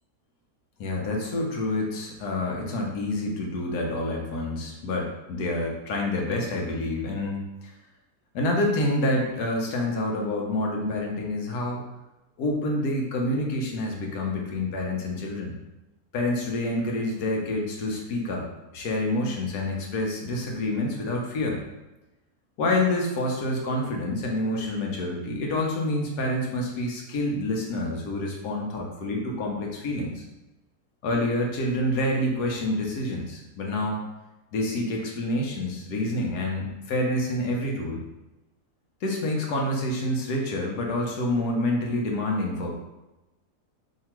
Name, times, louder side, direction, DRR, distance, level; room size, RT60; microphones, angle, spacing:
voice 1, 0.8-7.7 8.3-11.8 12.4-15.5 16.1-18.5 18.7-21.6 22.6-30.2 31.0-34.0 34.5-38.0 39.0-42.7, left 1 dB, 75° left, 0 dB, 1.3 m, -27 dB
2.9 x 2.8 x 4.4 m, 0.99 s
omnidirectional pair, 1.7 m